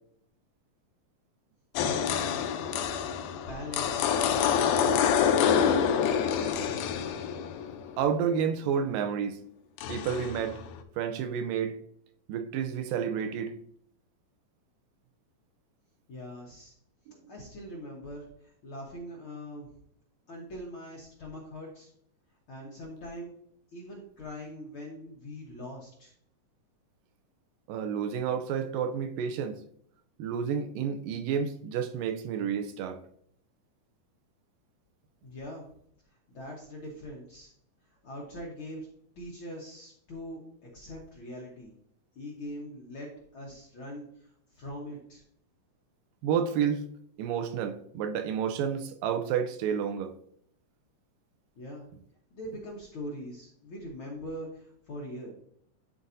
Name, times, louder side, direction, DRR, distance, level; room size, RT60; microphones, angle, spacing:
sound 1, 1.8-8.1 9.8-10.8, left 8 dB, 80° left, 2.0 m, -27 dB
voice 1, 1.8-2.1 3.4-4.2 4.6-6.8 16.1-16.7 17.3-19.7 20.3-21.9 22.5-23.3 23.7-26.1 35.2-35.6 36.3-37.5 38.0-38.9 39.2-40.4 40.7-41.7 42.1-45.2 51.6-51.9 52.3-55.3, equal, 60° left, 1.4 m, -42 dB
voice 2, 8.0-9.4 9.9-10.6 11.0-11.8 12.3-13.6 27.7-29.6 30.2-33.0 46.2-46.8 47.2-50.1, right 7 dB, 85° right, 2.3 m, -30 dB
12.0 x 4.0 x 2.6 m
omnidirectional pair, 3.9 m